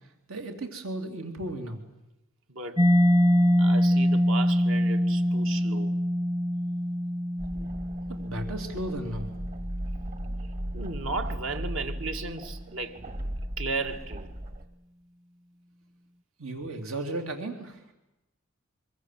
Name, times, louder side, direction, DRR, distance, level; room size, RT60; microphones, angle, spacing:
voice 1, 0.3-1.8 8.1-9.3 16.4-17.8, right 1 dB, 85° right, 3.2 m, -35 dB
voice 2, 2.5-2.8 3.6-5.9 10.7-13.0 13.6-14.3, right 3 dB, 70° right, 2.2 m, -35 dB
Mallet percussion, 2.8-10.3, equal, 20° right, 1.0 m, -24 dB
sound 1, 7.4-14.6, equal, 45° right, 2.1 m, -37 dB
25.5 x 24.5 x 7.7 m
head